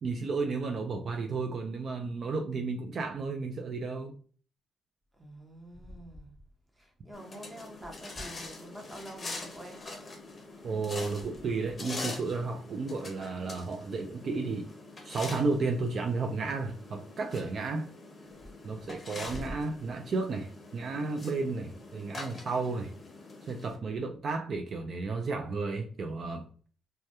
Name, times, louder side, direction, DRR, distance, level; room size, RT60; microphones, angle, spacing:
voice 1, 0.0-4.1 10.6-14.7 15.0-17.9 18.6-22.9 23.5-26.5, right 3 dB, 55° right, 0.3 m, -33 dB
voice 2, 5.1-6.3 6.7-9.8 19.1-19.6, equal, 10° right, 0.8 m, -45 dB
sound 1, 7.1-23.8, left 2 dB, 35° left, 0.6 m, -44 dB
2.2 x 2.1 x 2.8 m
cardioid pair, 90°, 0 cm